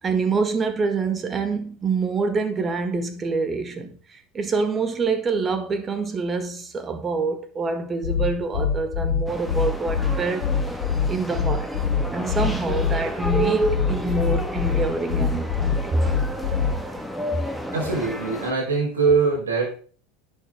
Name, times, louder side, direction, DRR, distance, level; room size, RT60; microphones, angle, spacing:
voice 1, 0.0-10.5 11.1-11.7 12.1-16.2 16.5-17.1, right 4 dB, 25° right, 1.8 m, -26 dB
Outside the club, 8.0-17.0, left 6 dB, 70° left, 1.2 m, -24 dB
sound 1, 9.3-18.5, right 1 dB, 5° right, 1.7 m, -31 dB
voice 2, 17.7-19.8, right 4 dB, 80° right, 4.8 m, -22 dB
11.0 x 7.9 x 3.7 m
hypercardioid pair, 80°, 0 cm